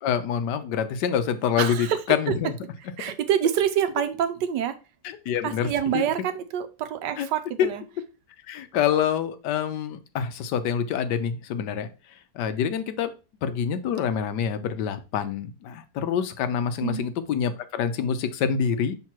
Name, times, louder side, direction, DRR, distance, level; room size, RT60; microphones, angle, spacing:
voice 1, 0.0-2.5 5.0-5.7 5.9-6.0 7.2-7.3 7.6-7.7 8.5-11.9 12.3-13.1 13.4-19.0, left 8 dB, 80° left, 10 dB, 1.3 m, -26 dB
voice 2, 1.6-2.0 3.0-4.7 5.4-7.8 16.8-17.0, right 9 dB, 90° right, 9 dB, 1.4 m, -26 dB
5.8 x 3.8 x 4.5 m, 0.32 s
omnidirectional pair, 1.8 m